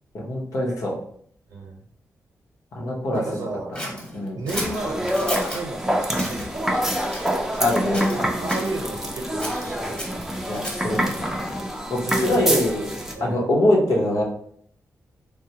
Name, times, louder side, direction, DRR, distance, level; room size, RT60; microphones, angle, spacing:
voice 1, 0.1-1.0 2.7-3.4 4.1-4.4 7.6-8.3 10.5-11.3 11.9-12.9 13.2-14.2, left 1 dB, 75° left, -2 dB, 0.9 m, -23 dB
voice 2, 1.5-1.8 3.1-3.7 4.3-6.9 8.4-10.2 12.0-12.5 13.1-13.5, right 2 dB, 85° right, 0 dB, 0.8 m, -32 dB
Scissors, 3.8-5.6 6.1-6.5 7.1-7.7 7.9-8.7 9.4-11.0, equal, 20° left, 1.2 m, -34 dB
sound 1, 4.5-13.1, equal, 5° right, 0.5 m, -26 dB
3.4 x 2.2 x 2.8 m, 0.64 s
cardioid pair, 80°, 6 cm